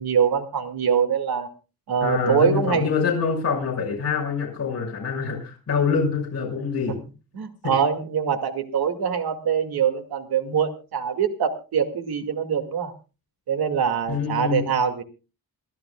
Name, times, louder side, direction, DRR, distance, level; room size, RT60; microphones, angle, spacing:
voice 1, 0.0-1.5 1.9-2.9 7.3-12.9 13.5-15.0, right 7 dB, 85° right, 6 dB, 2.3 m, -24 dB
voice 2, 2.0-7.0 7.6-7.7 14.1-14.7, left 5 dB, 40° left, -2 dB, 6.2 m, -25 dB
27.0 x 13.0 x 2.3 m, 0.32 s
wide cardioid pair, 165°, 36 cm